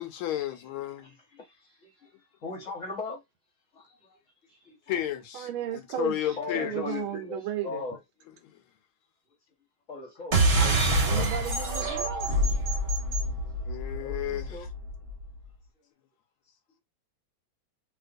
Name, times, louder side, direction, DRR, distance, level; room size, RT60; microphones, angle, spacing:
voice 1, 0.0-1.1 4.9-6.8 13.7-14.6, left 12 dB, 80° left, 1.5 m, -32 dB
voice 2, 1.0-3.2 3.7-4.2 4.5-4.9 6.4-8.0 9.9-11.0 13.9-14.7, left 4 dB, 40° left, 1.3 m, -39 dB
voice 3, 5.3-7.8 11.0-12.3, right 11 dB, 75° right, 1.5 m, -34 dB
sound 1, 10.3-15.2, right 1 dB, 35° right, 1.2 m, -26 dB
3.3 x 2.9 x 2.5 m
omnidirectional pair, 2.4 m